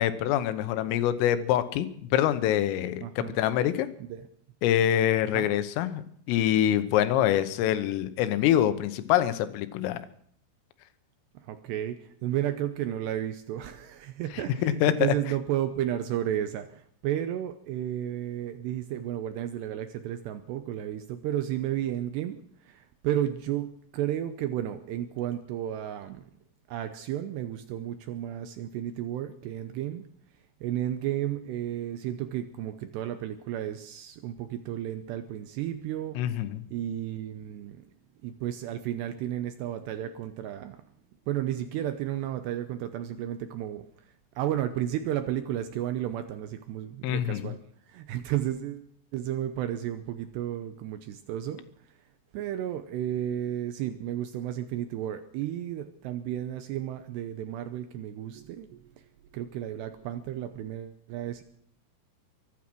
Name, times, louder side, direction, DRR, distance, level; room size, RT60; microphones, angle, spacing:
voice 1, 0.0-3.9 4.6-6.0 6.3-10.1 14.6-15.2 36.2-36.6 47.0-47.5, left 11 dB, 85° left, 12 dB, 3.6 m, -25 dB
voice 2, 3.0-3.4 4.0-4.2 5.3-5.5 11.3-26.3 26.7-30.1 30.6-36.2 36.7-37.9 38.2-40.8 41.3-43.9 44.4-47.6 47.9-48.9 49.1-51.6 52.3-58.9 59.3-61.4, right 11 dB, 90° right, 9 dB, 2.4 m, -33 dB
23.5 x 10.0 x 6.1 m, 0.65 s
omnidirectional pair, 5.9 m